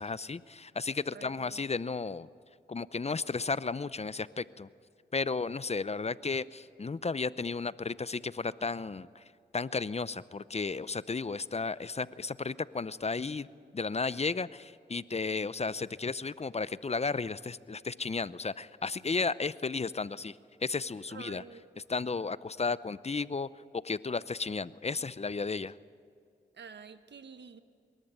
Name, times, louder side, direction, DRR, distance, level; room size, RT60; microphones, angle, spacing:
voice 1, 0.0-2.3 2.7-4.7 5.1-9.2 9.5-13.5 13.7-21.4 21.9-25.8, left 4 dB, 35° left, 17 dB, 0.6 m, -34 dB
voice 2, 1.1-1.6 21.1-21.7 26.5-27.6, right 6 dB, 75° right, 10 dB, 1.1 m, -48 dB
23.0 x 13.5 x 9.0 m, 2.3 s
cardioid pair, 40°, 18 cm